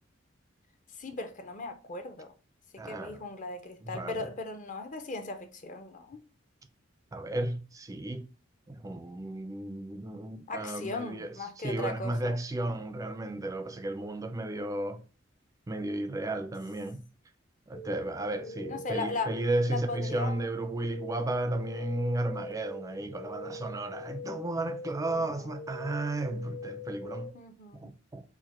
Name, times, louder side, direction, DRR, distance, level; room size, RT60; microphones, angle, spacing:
voice 1, 1.0-2.3 2.7-6.2 10.5-12.4 18.4-19.4 19.7-20.4 25.1-25.5 27.3-27.9, left 3 dB, 40° left, 0.5 m, -38 dB
voice 2, 2.8-3.2 3.8-4.3 7.1-8.3 8.7-11.3 11.6-15.0 15.7-17.1 17.7-27.4 27.7-28.2, right 1 dB, 15° right, 0.3 m, -33 dB
sound 1, 17.7-27.3, left 1 dB, 65° left, 1.0 m, -43 dB
4.7 x 2.1 x 4.2 m
head